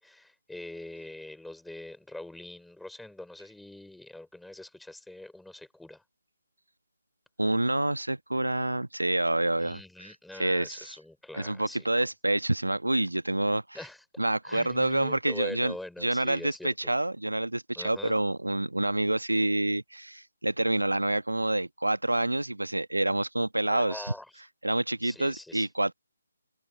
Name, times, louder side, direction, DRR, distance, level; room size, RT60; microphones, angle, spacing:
voice 1, 0.0-6.0 9.6-12.1 13.7-14.0 14.4-16.9 17.8-18.1 23.7-24.4 25.0-25.7, left 1 dB, ahead, 5.3 m, -43 dB
voice 2, 7.4-10.9 11.3-13.8 14.2-15.7 16.0-24.1 24.6-25.9, right 1 dB, 85° right, 1.4 m, -28 dB
figure-of-eight pair, 145°, 0 cm